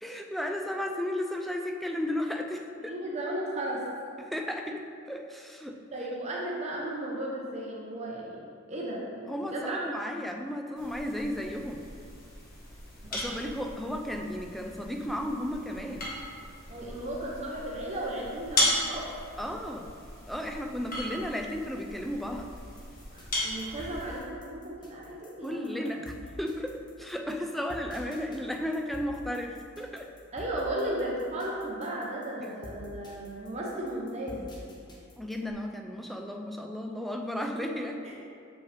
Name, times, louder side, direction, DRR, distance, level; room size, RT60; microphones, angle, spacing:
voice 1, 0.0-2.9 4.2-5.8 9.3-11.9 13.1-16.1 19.4-19.9 20.3-22.5 25.4-30.1 32.4-32.5 35.2-38.1, left 1 dB, ahead, 3 dB, 0.3 m, -34 dB
voice 2, 2.8-3.9 5.9-8.4 8.7-9.8 13.0-13.6 16.7-19.1 23.1-25.9 30.3-34.5 38.0-38.1, right 1 dB, 30° right, -4 dB, 0.7 m, -35 dB
sound 1, 10.7-24.2, left 1 dB, 40° left, 1.3 m, -36 dB
sound 2, 22.4-35.5, left 1 dB, 20° left, 0.9 m, -47 dB
6.5 x 5.2 x 3.3 m, 2.3 s
head